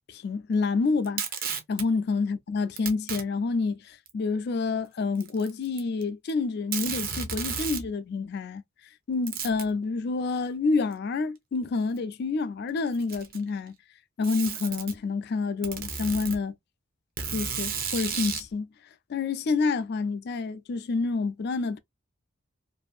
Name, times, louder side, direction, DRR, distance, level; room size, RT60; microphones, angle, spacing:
voice 1, 0.1-8.6 9.1-13.8 14.2-16.5 17.3-18.7 19.1-21.8, left 4 dB, 50° left, 0.3 m, -28 dB
Packing tape duct tape, 1.0-1.9 2.8-3.2 4.1-4.2 5.2-6.0 6.3-6.4 6.7-7.9 9.3-9.7 10.9-11.0 12.0-12.1 12.9-13.5 14.2-15.0 15.6-16.4 17.2-18.5, right 6 dB, 45° right, 0.6 m, -33 dB
2.6 x 2.5 x 2.3 m
head